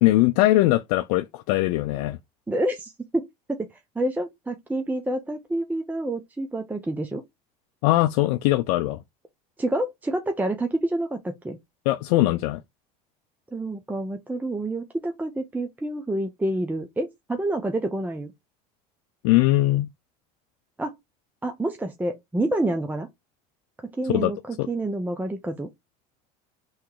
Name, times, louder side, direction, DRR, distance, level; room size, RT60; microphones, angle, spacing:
voice 1, 0.0-2.2 7.8-9.0 11.9-12.6 19.2-19.9 24.1-24.3 24.6-24.7, left 17 dB, 75° left, 0.5 m, -21 dB
voice 2, 2.5-3.2 4.0-7.2 9.6-11.6 13.5-18.3 20.8-21.0 21.4-23.1 23.8-25.7, right 1 dB, 10° right, 0.7 m, -28 dB
3.4 x 3.1 x 4.7 m
supercardioid pair, 100°, 19 cm